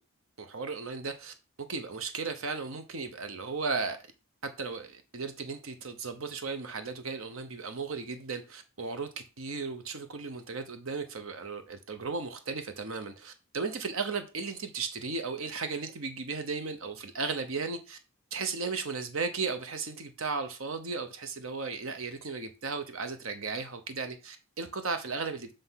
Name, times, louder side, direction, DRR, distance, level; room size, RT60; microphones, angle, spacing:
voice 1, 0.4-4.0 4.6-9.1 9.4-18.0 18.3-25.5, right 4 dB, 70° right, 0.8 m, -35 dB
7.8 x 3.4 x 5.6 m
head